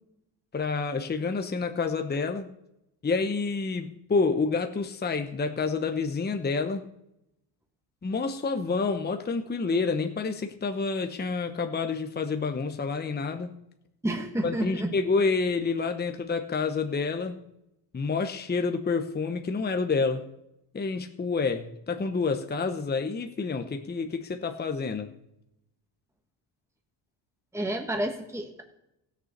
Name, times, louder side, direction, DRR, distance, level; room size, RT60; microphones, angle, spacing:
voice 1, 0.5-2.5 3.0-6.9 8.0-13.5 14.4-17.4 17.9-20.2 20.7-25.1, left 4 dB, 20° left, 6 dB, 1.0 m, -28 dB
voice 2, 14.0-14.9 27.5-28.6, right 1 dB, 5° right, 3 dB, 1.6 m, -30 dB
15.5 x 6.9 x 6.7 m, 0.84 s
cardioid pair, 90°, 47 cm